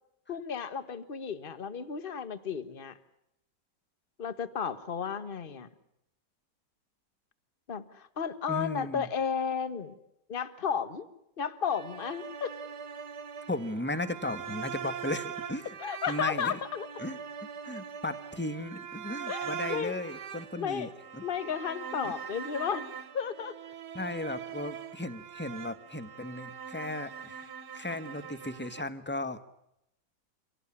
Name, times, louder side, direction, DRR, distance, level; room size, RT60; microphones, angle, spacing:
voice 1, 0.3-2.9 4.2-5.7 7.7-9.9 10.3-11.1 11.4-12.5 15.8-16.9 19.3-19.9 20.5-20.9 21.2-22.9 23.1-23.5, left 7 dB, 35° left, 12 dB, 1.4 m, -33 dB
voice 2, 8.5-9.1 13.5-15.7 16.1-16.6 17.0-17.2 17.6-20.9 21.1-21.2 22.0-22.1 23.9-29.4, left 1 dB, 10° left, 11 dB, 1.0 m, -36 dB
sound 1, 11.7-28.8, right 8 dB, 70° right, 1.7 m, -42 dB
25.0 x 18.0 x 9.8 m, 0.82 s
omnidirectional pair, 1.9 m